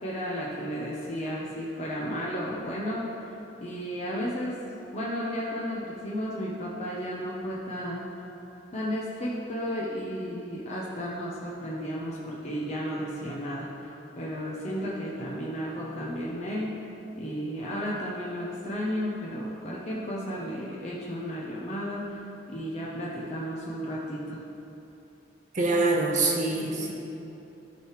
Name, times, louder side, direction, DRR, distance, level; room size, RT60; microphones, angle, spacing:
voice 1, 0.0-3.0 3.6-4.6 4.9-8.1 8.7-16.7 17.2-22.2 22.5-24.4, equal, 40° left, -5 dB, 0.9 m, -33 dB
voice 2, 25.5-26.9, right 2 dB, 45° right, -1 dB, 1.0 m, -25 dB
13.5 x 4.8 x 3.3 m, 2.9 s
head